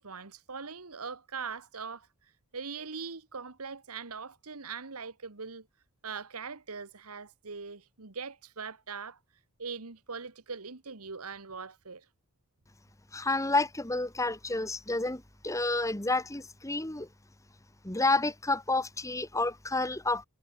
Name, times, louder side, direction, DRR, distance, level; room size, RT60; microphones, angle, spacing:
voice 1, 0.0-2.1 2.5-5.7 6.0-9.2 9.6-12.0, right 5 dB, 90° right, 1.6 m, -41 dB
voice 2, 13.1-17.1 17.8-20.2, left 2 dB, 15° left, 1.5 m, -30 dB
head